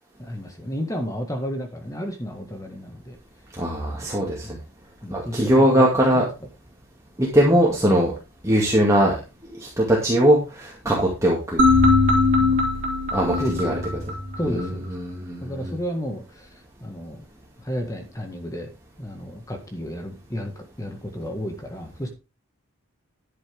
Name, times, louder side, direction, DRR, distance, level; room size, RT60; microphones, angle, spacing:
voice 1, 0.2-3.2 3.9-4.1 4.4-4.6 5.0-6.2 10.8-11.0 12.4-12.7 13.4-13.9 14.4-14.9 15.4-16.5 16.8-17.2 17.6-18.7 19.0-22.1, equal, 15° left, 4 dB, 1.7 m, -32 dB
voice 2, 3.5-4.6 5.1-6.3 7.2-8.1 8.4-9.2 9.5-11.6 13.1-13.8 14.4-14.7 15.0-15.7, equal, 15° right, -4 dB, 2.4 m, -20 dB
sound 1, 11.6-14.7, left 3 dB, 35° right, 3.2 m, -20 dB
10.5 x 9.7 x 3.6 m, 0.29 s
head